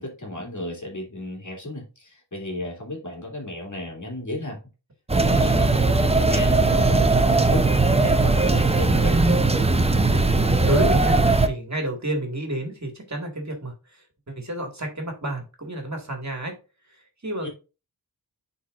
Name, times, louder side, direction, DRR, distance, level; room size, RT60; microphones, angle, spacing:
voice 1, 0.0-4.6 5.2-7.7 7.9-9.2 17.4-17.5, left 1 dB, 45° left, 0 dB, 2.6 m, -34 dB
sound 1, 5.1-11.5, right 3 dB, 15° right, 0.6 m, -19 dB
voice 2, 10.1-16.6 16.9-17.5, right 1 dB, 40° right, 3 dB, 1.9 m, -30 dB
10.0 x 4.1 x 2.5 m, 0.31 s
wide cardioid pair, 65°, 41 cm